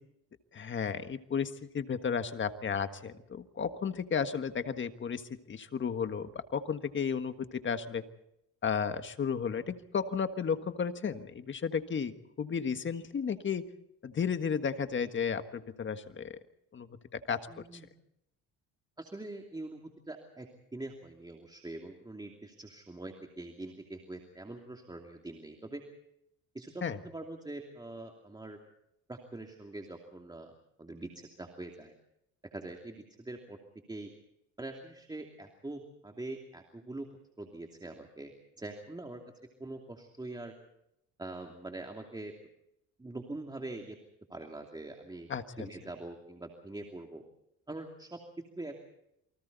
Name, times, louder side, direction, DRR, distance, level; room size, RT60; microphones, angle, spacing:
voice 1, 0.5-5.2 5.5-8.0 8.6-13.6 14.0-16.4 16.7-17.5 26.8-27.0 45.3-45.7, left 6 dB, 35° left, 9 dB, 1.6 m, -33 dB
voice 2, 17.5-17.9 19.0-25.8 26.5-28.6 29.1-30.5 30.8-31.9 32.4-33.6 33.9-34.1 34.6-37.1 37.4-39.2 39.6-40.5 41.2-42.3 43.0-44.0 44.3-45.3 45.6-47.2 47.7-48.2 48.6-48.8, right 2 dB, 10° right, 2 dB, 2.7 m, -43 dB
28.5 x 24.5 x 4.1 m, 0.80 s
cardioid pair, 110°, 33 cm